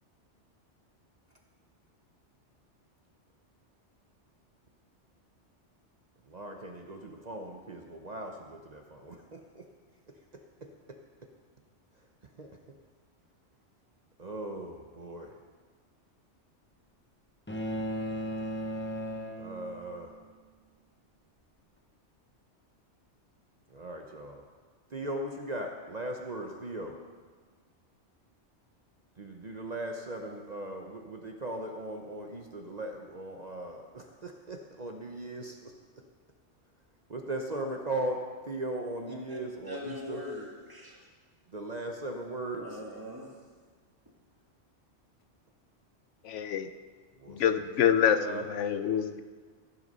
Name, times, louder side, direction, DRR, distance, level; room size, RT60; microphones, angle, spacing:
voice 1, 6.3-9.6 12.4-12.6 14.2-15.4 19.4-20.2 23.7-24.4 24.9-27.0 29.2-35.7 37.1-38.2 38.4-40.2 41.5-42.8 47.2-47.7 48.1-48.4, right 1 dB, 40° right, 2 dB, 0.9 m, -38 dB
sound 1, 17.5-20.0, equal, 10° left, 0.8 m, -35 dB
voice 2, 39.6-41.0 42.6-43.3, left 2 dB, 20° right, -2 dB, 1.9 m, -41 dB
voice 3, 46.2-46.7 47.3-49.2, left 8 dB, 90° left, 10 dB, 1.0 m, -26 dB
14.5 x 8.0 x 5.4 m, 1.5 s
omnidirectional pair, 1.2 m